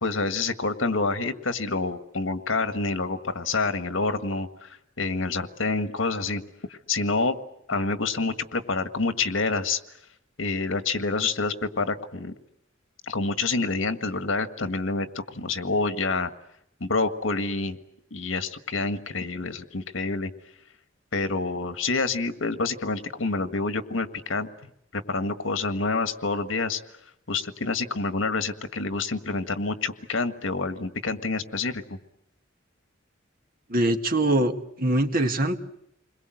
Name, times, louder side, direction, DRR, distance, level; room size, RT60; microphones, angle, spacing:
voice 1, 0.0-6.4 6.7-7.4 7.7-9.8 10.4-12.3 13.1-16.3 16.8-17.8 18.1-20.3 21.1-24.5 24.9-26.8 27.3-32.0, left 3 dB, 85° left, 9 dB, 1.7 m, -27 dB
voice 2, 33.7-35.6, right 1 dB, 50° right, 6 dB, 1.9 m, -23 dB
29.5 x 22.0 x 7.8 m, 0.76 s
head